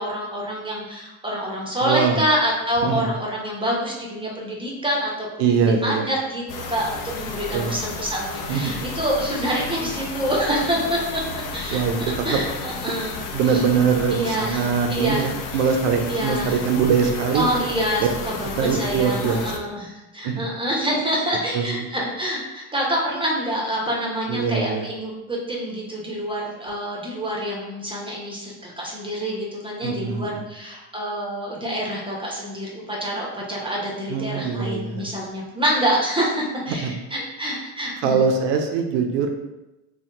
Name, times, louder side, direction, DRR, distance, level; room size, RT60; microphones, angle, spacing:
voice 1, 0.0-11.8 12.2-13.2 13.5-13.6 14.1-15.3 16.1-16.6 17.3-38.2, equal, 10° right, -3 dB, 0.8 m, -26 dB
voice 2, 1.8-2.2 2.8-3.1 5.4-6.1 7.5-7.8 8.5-8.9 11.7-12.4 13.3-17.6 18.0-18.1 18.6-19.7 20.2-20.5 21.5-21.9 24.3-24.9 29.8-30.5 34.1-35.1 36.8-36.9 38.0-39.3, right 6 dB, 65° right, 4 dB, 0.5 m, -22 dB
sound 1, 6.5-19.6, left 4 dB, 45° left, 0.5 m, -33 dB
2.7 x 2.3 x 3.4 m, 0.99 s
hypercardioid pair, 80°, 45 cm